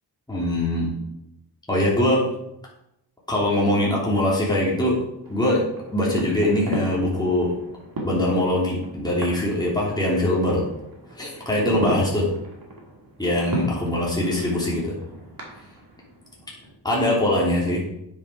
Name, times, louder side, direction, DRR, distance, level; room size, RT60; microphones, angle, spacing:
voice 1, 0.3-1.0 1.7-2.2 3.3-5.0 5.3-5.6 5.9-7.5 8.0-10.6 11.1-12.3 13.2-14.9 16.8-17.8, left 1 dB, 10° left, -5 dB, 3.1 m, -22 dB
sound 1, 5.2-16.7, right 1 dB, 55° right, 2.4 m, -36 dB
9.7 x 7.0 x 5.0 m, 0.82 s
wide cardioid pair, 105°, 42 cm